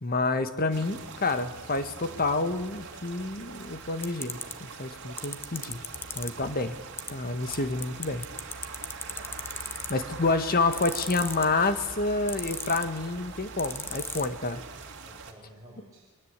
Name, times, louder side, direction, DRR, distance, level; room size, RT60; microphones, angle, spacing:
voice 1, 0.0-5.8 6.1-6.8 7.1-8.3 9.9-14.6, left 3 dB, 45° left, 9 dB, 1.7 m, -28 dB
sound 1, 0.7-15.3, right 4 dB, 60° right, 3.0 m, -43 dB
sound 2, 4.0-4.5 5.2-6.3 7.0-7.1 7.5-7.6 7.8-10.1 10.7-11.6 12.3-13.0 13.6-14.2, left 3 dB, 10° left, 1.2 m, -34 dB
voice 2, 9.1-10.0 15.0-16.1, right 1 dB, 15° right, -5 dB, 5.7 m, -53 dB
29.5 x 22.5 x 8.3 m, 1.2 s
head